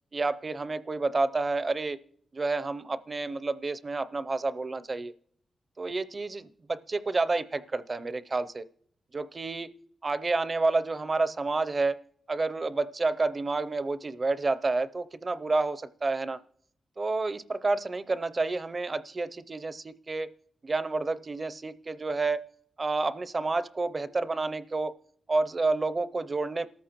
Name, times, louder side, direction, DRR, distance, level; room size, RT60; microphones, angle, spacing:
voice 1, 0.1-2.0 2.3-5.1 5.8-8.7 9.1-9.7 10.0-12.0 12.3-16.4 17.0-20.3 20.6-22.5 22.8-24.9 25.3-26.7, right 3 dB, 30° right, 13 dB, 0.5 m, -29 dB
28.0 x 13.5 x 3.0 m, 0.70 s
wide cardioid pair, 115°, 0 cm